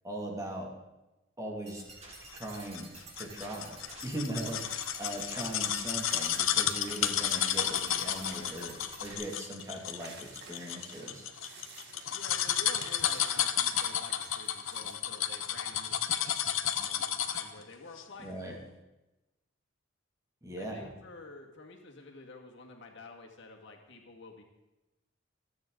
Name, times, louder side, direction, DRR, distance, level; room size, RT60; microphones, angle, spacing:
voice 1, 0.0-0.7 1.4-1.9 2.3-2.9 3.2-8.8 9.0-11.3 18.2-18.6 20.4-20.9, right 1 dB, 15° right, -1 dB, 2.5 m, -39 dB
sound 1, 1.7-9.1, right 3 dB, 35° right, 3.3 m, -50 dB
sound 2, 2.4-17.6 18.0-18.1, left 10 dB, 80° left, 1.0 m, -32 dB
sound 3, 2.5-2.9 3.3-14.9, right 4 dB, 60° right, 2.2 m, -52 dB
voice 2, 7.8-8.7 12.1-18.6 20.6-24.4, left 3 dB, 65° left, 1 dB, 2.2 m, -49 dB
27.0 x 9.5 x 4.0 m, 1.0 s
head